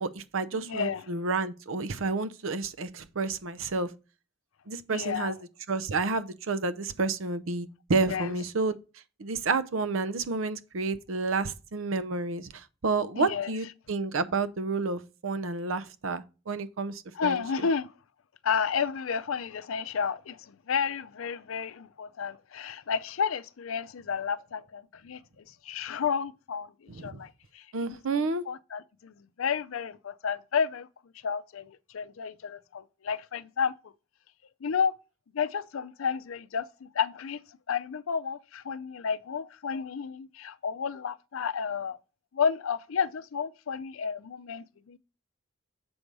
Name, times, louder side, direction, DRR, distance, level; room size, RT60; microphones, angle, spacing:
voice 1, 0.0-3.9 4.7-5.4 5.7-8.8 9.2-17.7 26.9-27.2 27.7-28.4, right 3 dB, 80° right, 0.7 m, -30 dB
voice 2, 0.5-1.0 4.9-5.3 8.1-8.3 13.2-13.5 17.2-17.9 18.4-25.2 25.6-26.7 27.0-27.3 27.5-27.6 28.5-30.9 31.2-33.7 34.6-34.9 35.3-37.4 37.7-42.0 42.3-45.0, left 6 dB, 85° left, 0.5 m, -31 dB
7.0 x 5.3 x 4.7 m
head